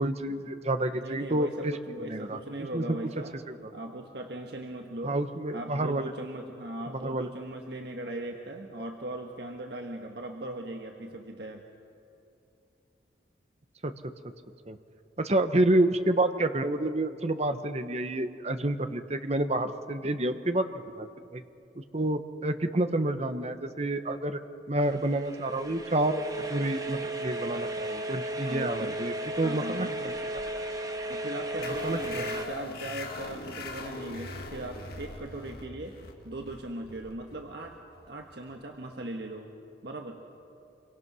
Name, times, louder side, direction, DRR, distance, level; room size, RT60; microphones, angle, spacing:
voice 1, 0.0-1.7 2.0-2.4 2.7-3.0 3.5-3.6 5.0-6.1 6.9-7.3 13.8-13.9 14.7-14.8 15.2-20.7 21.0-21.1 21.3-21.4 21.8-24.4 24.7-26.2 26.5-30.3 31.7-32.4, right 1 dB, 35° right, 9 dB, 1.1 m, -29 dB
voice 2, 0.9-5.2 5.5-11.6 28.4-29.0 29.4-29.9 31.1-36.0 36.2-37.8 38.1-39.5 39.8-40.2, right 1 dB, 60° right, 2 dB, 1.4 m, -39 dB
sound 1, 24.8-32.5, right 1 dB, 20° right, 1.4 m, -35 dB
sound 2, 31.6-38.8, left 3 dB, 55° left, 2.1 m, -41 dB
27.0 x 23.5 x 6.2 m, 2.7 s
head